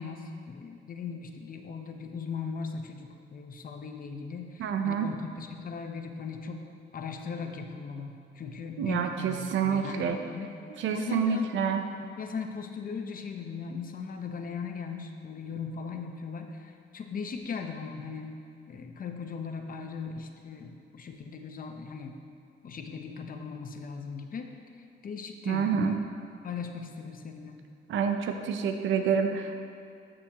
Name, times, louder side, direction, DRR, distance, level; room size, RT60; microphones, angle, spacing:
voice 1, 0.0-6.7 6.9-10.5 10.9-11.5 12.2-18.4 18.7-22.2 22.6-24.5 25.0-26.0 26.4-27.6, left 5 dB, 45° left, 4 dB, 0.9 m, -38 dB
voice 2, 4.6-5.1 8.8-10.2 10.8-11.8 25.5-26.0 27.9-29.6, right 7 dB, 75° right, 6 dB, 0.7 m, -28 dB
13.5 x 6.5 x 3.0 m, 2.5 s
cardioid pair, 90°, 20 cm